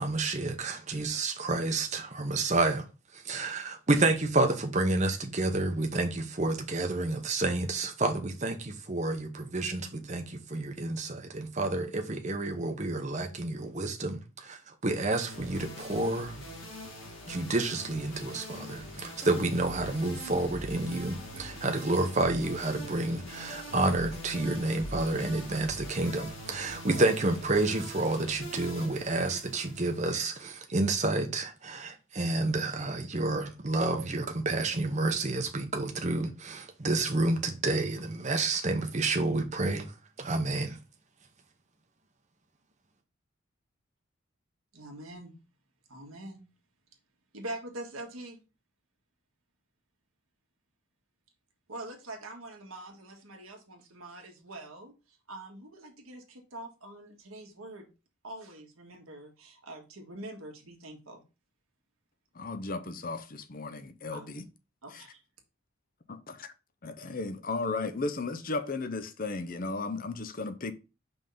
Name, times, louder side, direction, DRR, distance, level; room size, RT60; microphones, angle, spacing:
voice 1, 0.0-2.9 3.1-16.5 17.3-40.8, right 2 dB, 35° right, 0.8 m, -29 dB
sound 1, 15.1-30.5, equal, 65° left, 2.1 m, -43 dB
voice 2, 44.7-45.3 45.9-46.4 47.3-48.4 51.7-57.9 58.2-61.2 64.1-64.3 64.8-65.2, right 1 dB, 80° right, 1.6 m, -44 dB
voice 3, 62.3-64.4 64.9-65.0 66.1-66.2 66.8-70.7, left 3 dB, 40° left, 0.6 m, -35 dB
5.4 x 3.6 x 5.4 m
head